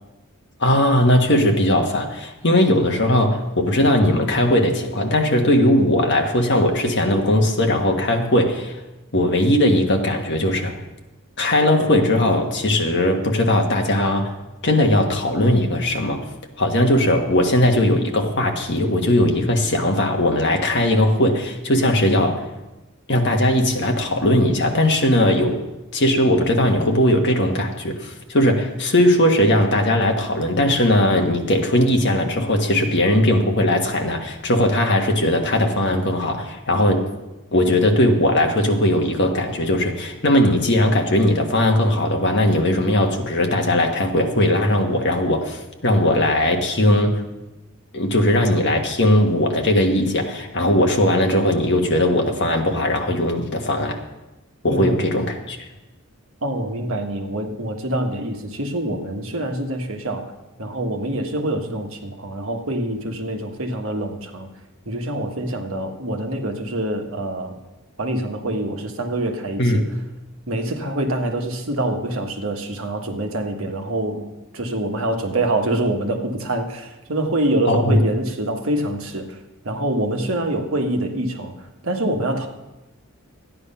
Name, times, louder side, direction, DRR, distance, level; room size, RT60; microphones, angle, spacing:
voice 1, 0.6-8.8 9.1-10.8 11.4-14.3 14.6-16.2 16.6-22.4 23.1-25.6 25.9-37.1 37.5-47.2 47.9-54.0 54.6-55.6 69.6-69.8 77.6-78.0, left 1 dB, 50° left, 3 dB, 1.5 m, -19 dB
voice 2, 54.7-55.0 56.4-60.3 60.6-64.5 64.9-67.6 68.0-69.6 70.5-74.3 74.5-79.4 79.6-81.5 81.8-82.5, right 1 dB, 65° right, 3 dB, 1.5 m, -25 dB
13.5 x 9.8 x 5.6 m, 1.0 s
head